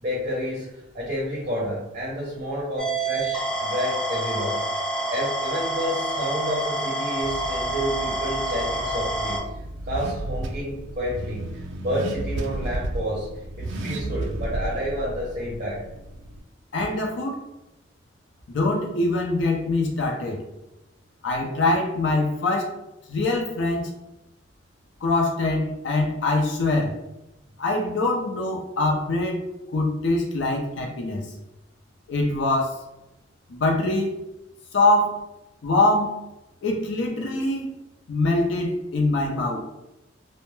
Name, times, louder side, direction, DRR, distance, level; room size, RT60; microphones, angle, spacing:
voice 1, 0.0-4.6 5.1-9.5 9.8-13.3 13.6-15.8, equal, 40° right, -4 dB, 0.6 m, -30 dB
sound 1, 2.8-9.4, right 2 dB, 5° left, 0.4 m, -28 dB
Car / Accelerating revving vroom, 7.2-16.4, right 1 dB, 75° right, 0.3 m, -33 dB
voice 2, 16.7-17.4 18.5-20.4 21.2-22.7 23.1-23.9 25.0-27.0 27.6-29.4 29.7-31.3 32.1-32.8 33.5-34.2 34.7-35.2 35.6-36.2 36.6-37.7 38.1-39.6, left 2 dB, 75° left, 0 dB, 0.5 m, -23 dB
2.1 x 2.0 x 3.0 m, 0.92 s
head